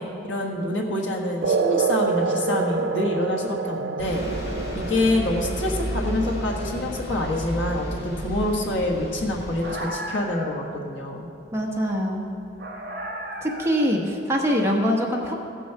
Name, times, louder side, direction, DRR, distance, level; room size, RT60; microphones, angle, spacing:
voice 1, 0.0-4.2 4.7-11.3, left 1 dB, 75° left, 0 dB, 1.5 m, -26 dB
sound 1, 1.4-8.4, right 4 dB, 70° right, 0.5 m, -28 dB
Bus, 4.0-9.7, equal, 55° left, 2.0 m, -32 dB
sound 2, 9.3-10.7 12.6-14.0, right 1 dB, 50° right, 2.7 m, -35 dB
voice 2, 11.5-12.3 13.4-15.3, equal, 15° right, -1 dB, 1.0 m, -23 dB
15.0 x 6.2 x 5.7 m, 2.6 s
head